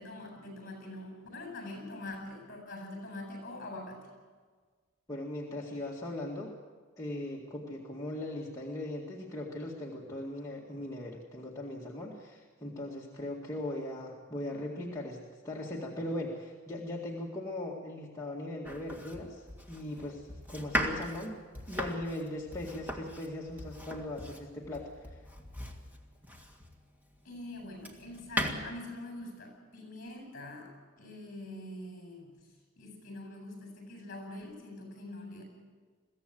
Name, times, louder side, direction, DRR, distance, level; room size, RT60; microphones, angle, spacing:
voice 1, 0.0-4.1 27.2-35.4, left 1 dB, 40° left, 4 dB, 7.6 m, -44 dB
voice 2, 5.1-6.6 7.0-21.4 21.7-25.2, left 1 dB, 15° left, -4 dB, 2.0 m, -39 dB
Domestic sounds home sounds, 18.6-26.8 27.4-28.5, equal, 10° right, 2.0 m, -38 dB
22.5 x 16.0 x 7.8 m, 1.5 s
head